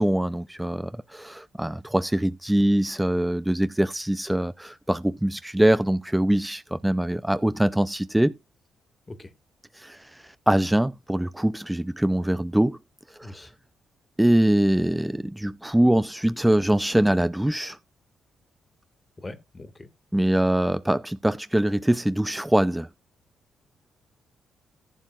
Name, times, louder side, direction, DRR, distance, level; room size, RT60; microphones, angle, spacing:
voice 1, 0.0-8.4 9.8-12.8 13.2-13.4 14.2-17.8 20.1-22.9, right 1 dB, 10° right, 0.5 m, -23 dB
voice 2, 13.2-13.5 19.2-19.9, left 2 dB, 30° left, 1.9 m, -41 dB
14.5 x 7.2 x 2.5 m
hypercardioid pair, 45°, 0 cm